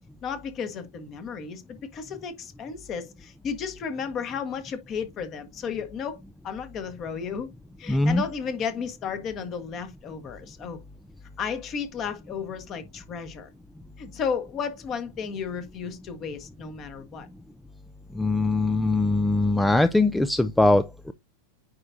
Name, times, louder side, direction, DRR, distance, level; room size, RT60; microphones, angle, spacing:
voice 1, 0.2-6.2 6.4-7.5 7.8-10.8 11.4-13.5 14.0-17.3, left 6 dB, 30° left, 1.5 m, -33 dB
voice 2, 7.9-8.2 18.1-21.1, left 2 dB, 5° left, 0.4 m, -21 dB
9.5 x 4.5 x 2.6 m
figure-of-eight pair, 90°, 0 cm